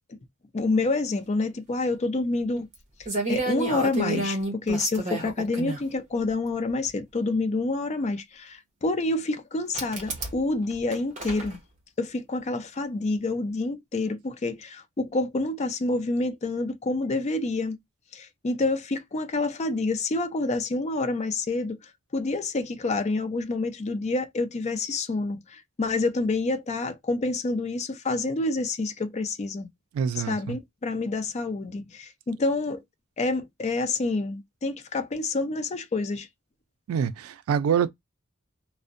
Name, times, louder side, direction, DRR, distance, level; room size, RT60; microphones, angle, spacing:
voice 1, 0.5-2.7 3.3-11.6 12.0-17.8 18.1-21.8 22.1-29.7 30.2-32.8 33.2-36.3, left 2 dB, 35° left, 0.4 m, -28 dB
sound 1, 2.7-2.8 3.0-5.8 6.9-7.0 9.7-10.4 10.7-11.5, right 2 dB, 35° right, 0.8 m, -30 dB
voice 2, 29.9-30.6 36.9-37.9, right 7 dB, 80° right, 0.3 m, -26 dB
2.5 x 2.0 x 2.4 m
head